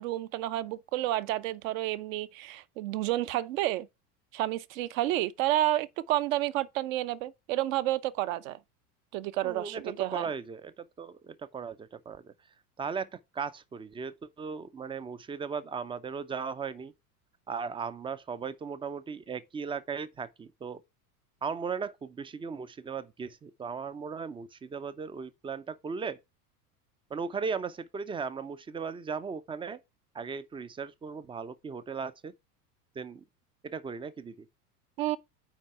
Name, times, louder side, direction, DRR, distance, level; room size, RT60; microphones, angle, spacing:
voice 1, 0.0-3.9 4.3-8.6 9.1-10.3 35.0-35.2, right 15 dB, 60° right, 0.8 m, -30 dB
voice 2, 9.4-12.3 12.8-16.9 17.5-20.8 21.4-26.2 27.1-29.8 30.1-32.3 33.0-33.2 33.6-34.5, right 5 dB, 10° right, 0.4 m, -37 dB
5.7 x 4.6 x 5.5 m
hypercardioid pair, 85°, 46 cm